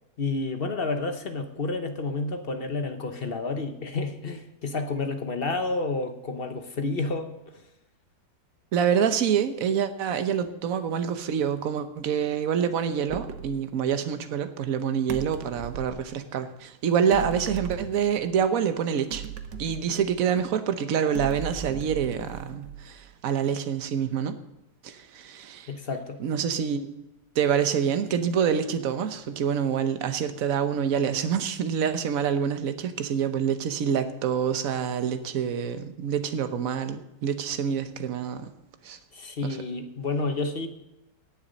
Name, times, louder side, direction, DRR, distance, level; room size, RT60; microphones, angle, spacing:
voice 1, 0.2-7.3 25.7-26.2 39.1-40.7, left 3 dB, 40° left, 7 dB, 1.0 m, -30 dB
voice 2, 8.7-19.2 19.6-24.4 24.8-25.7 26.2-26.9 27.3-38.5 38.8-39.0 39.4-39.6, right 8 dB, 55° right, 9 dB, 1.2 m, -26 dB
sound 1, 13.1-13.6 15.1-16.0 17.1-18.4 19.1-20.5 21.1-23.1, right 7 dB, 75° right, 1.5 m, -38 dB
18.5 x 7.2 x 5.2 m, 0.92 s
omnidirectional pair, 1.9 m